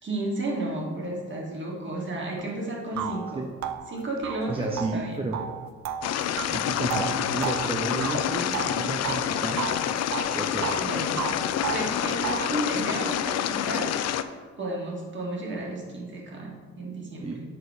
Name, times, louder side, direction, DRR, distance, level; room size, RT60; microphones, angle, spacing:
voice 1, 0.0-3.4 3.9-5.2 10.8-11.2 11.7-13.9 14.6-17.4, right 2 dB, 40° right, -1 dB, 1.8 m, -32 dB
sound 1, 2.4-2.5 3.0-9.3 9.6-10.9 11.2-12.6, right 8 dB, 65° right, 0.5 m, -33 dB
voice 2, 2.9-3.5 4.5-5.4 6.5-9.6 10.3-10.8 17.2-17.4, right 2 dB, 20° right, 1 dB, 0.6 m, -32 dB
sound 2, 6.0-14.2, left 10 dB, 60° left, 0.4 m, -28 dB
6.9 x 4.3 x 4.9 m, 1.5 s
cardioid pair, 90°, 30 cm